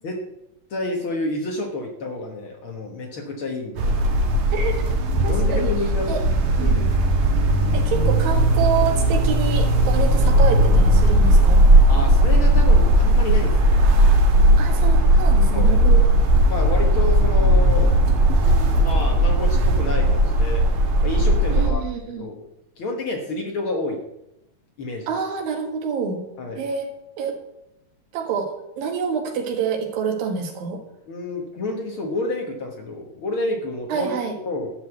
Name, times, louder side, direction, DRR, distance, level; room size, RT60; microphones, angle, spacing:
voice 1, 0.7-4.0 5.2-6.2 6.6-7.0 11.9-13.7 15.5-15.8 16.5-17.9 18.4-20.6 21.0-21.8 22.2-22.4 22.8-24.0 24.8-25.1 26.4-26.6 31.1-34.1 34.4-34.7, left 2 dB, 55° left, 1 dB, 1.6 m, -29 dB
sound 1, 3.8-21.7, right 1 dB, 65° right, 2.7 m, -17 dB
voice 2, 4.5-4.9 5.2-5.7 6.1-6.2 6.6-6.9 7.7-11.6 14.6-16.0 21.5-22.2 25.1-26.2 26.6-26.9 27.2-27.4 28.1-30.8 33.9-34.4, right 6 dB, 85° right, 2 dB, 3.4 m, -27 dB
12.5 x 5.6 x 7.9 m, 0.85 s
omnidirectional pair, 4.0 m